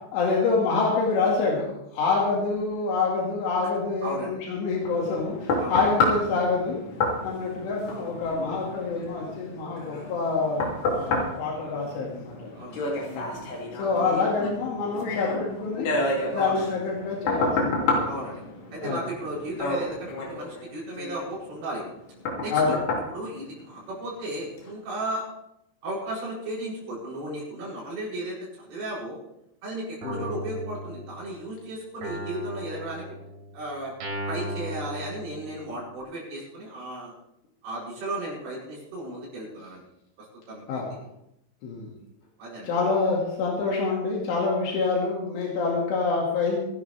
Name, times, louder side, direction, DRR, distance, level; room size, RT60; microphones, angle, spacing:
voice 1, 0.1-6.8 7.2-12.5 13.1-13.4 13.8-15.9 16.3-18.1 18.8-19.0 22.5-22.8 30.0-30.2 40.7-40.9 41.6-41.9 42.6-46.6, left 4 dB, 80° left, -3 dB, 4.8 m, -26 dB
voice 2, 4.0-4.4 5.6-5.7 12.5-12.9 13.9-14.2 16.3-16.6 18.0-18.4 18.7-21.8 22.4-22.8 23.1-25.3 25.8-29.2 29.6-33.0 33.5-33.9 34.3-37.1 37.6-39.8 40.5-40.8 42.4-42.7, right 1 dB, 65° right, -5 dB, 9.7 m, -35 dB
sound 1, 4.8-24.1 24.6-24.7, left 2 dB, 60° left, 4.9 m, -30 dB
Guitar, 30.0-31.5 32.0-35.9, equal, 85° right, 6.4 m, -36 dB
26.5 x 11.0 x 3.5 m, 0.82 s
omnidirectional pair, 5.5 m